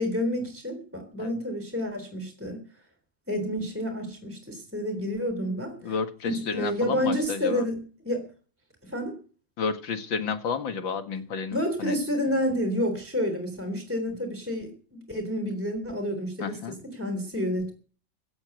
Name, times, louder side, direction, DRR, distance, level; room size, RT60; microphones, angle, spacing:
voice 1, 0.0-2.6 3.3-5.9 6.2-8.3 8.8-9.2 11.5-17.7, equal, 5° right, 7 dB, 3.6 m, -29 dB
voice 2, 5.8-7.6 9.6-12.0 16.4-16.8, left 5 dB, 80° left, 8 dB, 2.5 m, -31 dB
16.5 x 8.7 x 8.0 m, 0.39 s
omnidirectional pair, 2.1 m